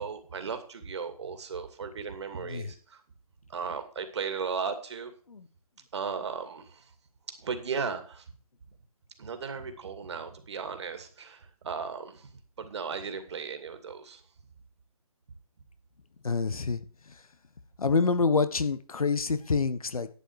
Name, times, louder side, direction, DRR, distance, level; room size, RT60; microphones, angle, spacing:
voice 1, 0.0-3.0 3.5-5.1 5.9-6.9 7.4-8.3 9.2-12.3 12.6-14.2, right 5 dB, 50° right, 8 dB, 2.4 m, -36 dB
voice 2, 16.2-16.8 17.8-20.1, left 4 dB, 70° left, 12 dB, 1.3 m, -27 dB
11.5 x 8.1 x 4.9 m, 0.41 s
figure-of-eight pair, 150°, 19 cm